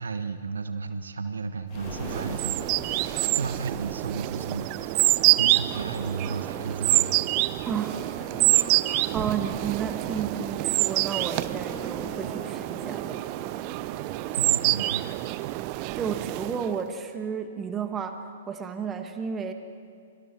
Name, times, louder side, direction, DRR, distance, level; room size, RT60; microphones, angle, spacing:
voice 1, 0.0-7.2 14.3-15.2, right 4 dB, 70° right, 9 dB, 1.2 m, -34 dB
sound 1, 1.7-7.3 7.6-7.7 8.0-8.1, left 5 dB, 35° left, 2.8 m, -45 dB
sound 2, 1.8-16.8, right 19 dB, 35° right, 0.5 m, -27 dB
sound 3, 6.0-15.2, left 2 dB, 5° left, 2.9 m, -46 dB
voice 2, 7.7-8.0 9.1-13.2 15.9-19.5, right 7 dB, 15° right, 7 dB, 1.4 m, -32 dB
29.5 x 24.5 x 4.4 m, 2.4 s
figure-of-eight pair, 115°, 0 cm